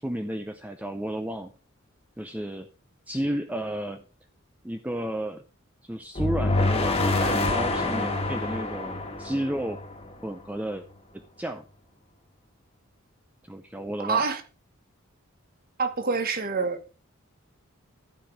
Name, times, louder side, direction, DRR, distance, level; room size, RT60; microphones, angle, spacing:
voice 1, 0.0-1.5 2.2-2.7 3.1-4.0 4.6-5.4 5.9-9.8 10.2-10.9 11.1-11.6 13.5-14.2, right 1 dB, 5° right, 0.6 m, -32 dB
sound 1, 6.2-10.2, left 2 dB, 30° left, 1.6 m, -26 dB
voice 2, 14.0-14.4 15.8-16.9, right 4 dB, 45° right, 1.1 m, -27 dB
12.0 x 5.1 x 4.8 m
head